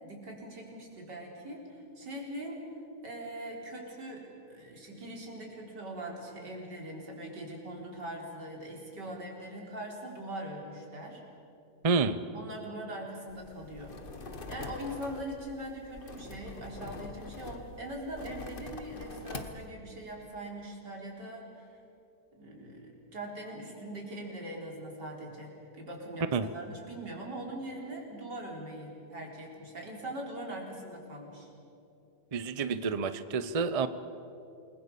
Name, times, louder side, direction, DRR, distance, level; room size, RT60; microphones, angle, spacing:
voice 1, 0.0-2.6 3.0-11.2 12.3-14.0 14.5-21.8 22.3-31.5, right 1 dB, 90° right, -1 dB, 4.8 m, -41 dB
voice 2, 11.8-12.2 26.3-26.5 32.3-33.9, right 4 dB, 35° right, 12 dB, 0.6 m, -29 dB
sound 1, 13.3-19.7, left 3 dB, 35° left, 1.3 m, -44 dB
28.5 x 21.0 x 7.0 m, 2.7 s
omnidirectional pair, 1.8 m